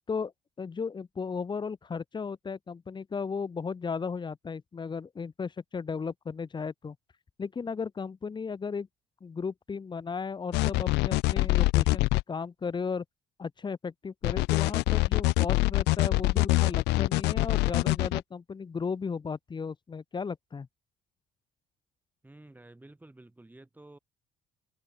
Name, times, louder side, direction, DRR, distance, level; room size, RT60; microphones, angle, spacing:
voice 1, 0.6-7.0 7.4-8.9 9.2-13.0 13.4-20.7, left 5 dB, 25° left, 1.5 m, -35 dB
sound 1, 10.5-12.2 14.2-18.2, left 22 dB, 85° left, 0.4 m, -24 dB
voice 2, 22.2-24.0, right 2 dB, 10° right, 3.7 m, -52 dB
open air
cardioid pair, 110°, 17 cm